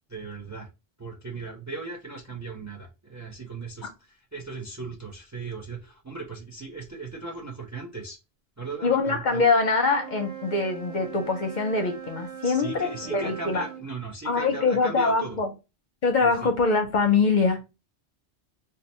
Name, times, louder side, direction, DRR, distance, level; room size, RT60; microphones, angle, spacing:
voice 1, 0.1-0.7 1.0-8.2 8.6-9.4 12.4-15.4 16.2-16.5, right 3 dB, 25° right, 0.4 m, -37 dB
voice 2, 8.8-13.6 14.2-15.5 16.0-17.6, left 4 dB, 55° left, 0.6 m, -23 dB
Wind instrument woodwind instrument, 9.9-13.9, right 7 dB, 55° right, 0.8 m, -40 dB
2.8 x 2.1 x 4.1 m
omnidirectional pair, 1.1 m